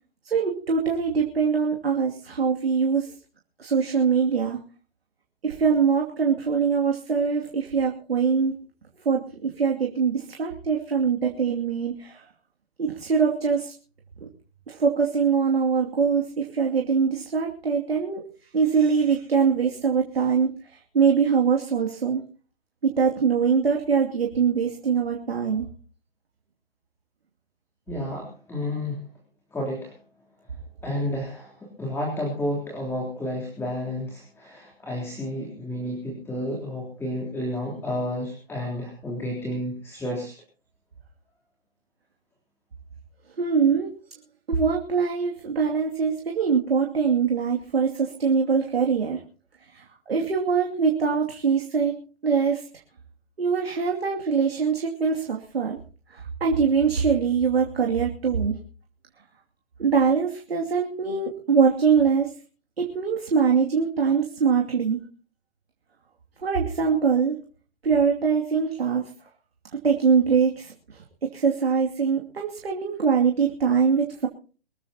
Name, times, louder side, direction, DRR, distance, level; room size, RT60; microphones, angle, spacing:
voice 1, 0.2-3.1 3.6-4.6 5.4-8.6 9.0-12.2 12.8-13.7 14.2-14.3 14.7-18.2 18.5-22.2 22.8-25.7 43.4-43.9 44.5-49.2 49.7-51.9 52.2-52.7 53.4-55.8 56.1-58.5 59.8-62.3 62.8-65.0 66.4-67.4 67.8-69.1 69.8-74.3, right 6 dB, 75° right, 1 dB, 2.7 m, -23 dB
voice 2, 27.9-29.1 29.5-29.9 30.8-40.3, left 1 dB, 10° left, -1 dB, 3.5 m, -31 dB
24.0 x 14.5 x 2.9 m, 0.39 s
figure-of-eight pair, 130°, 30 cm